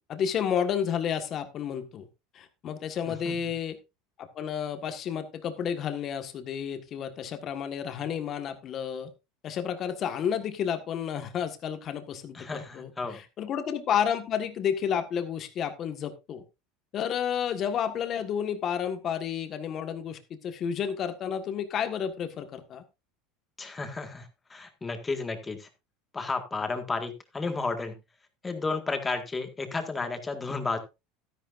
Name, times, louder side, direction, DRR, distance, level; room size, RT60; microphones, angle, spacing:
voice 1, 0.1-2.1 2.3-3.8 4.3-9.1 9.4-16.4 16.9-22.8, left 8 dB, 40° left, 8 dB, 1.5 m, -31 dB
voice 2, 12.3-13.2 23.6-25.7 26.1-27.9 28.4-30.8, left 3 dB, 15° left, 6 dB, 1.8 m, -32 dB
12.5 x 10.5 x 2.6 m, 0.25 s
supercardioid pair, 135°, 0 cm